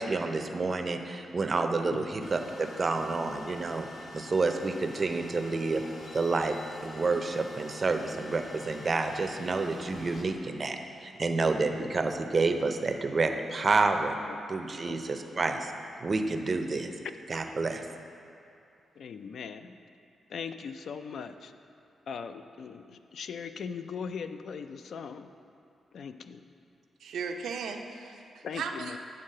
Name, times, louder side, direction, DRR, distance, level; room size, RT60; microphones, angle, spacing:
voice 1, 0.0-3.9 4.1-5.8 6.1-6.6 6.8-14.2 14.5-15.7 16.0-16.9 17.3-17.8, right 3 dB, 35° right, 6 dB, 0.5 m, -29 dB
voice 2, 1.9-2.3 14.9-15.0 19.0-19.8 20.3-21.5 22.1-25.3 25.9-26.4 28.4-29.0, left 6 dB, 65° left, 9 dB, 0.3 m, -39 dB
sound 1, 2.2-10.2, left 1 dB, 50° left, 1.1 m, -46 dB
voice 3, 27.0-29.0, right 5 dB, 85° right, 4 dB, 0.5 m, -37 dB
8.9 x 3.8 x 6.5 m, 2.5 s
wide cardioid pair, 130°, 0 cm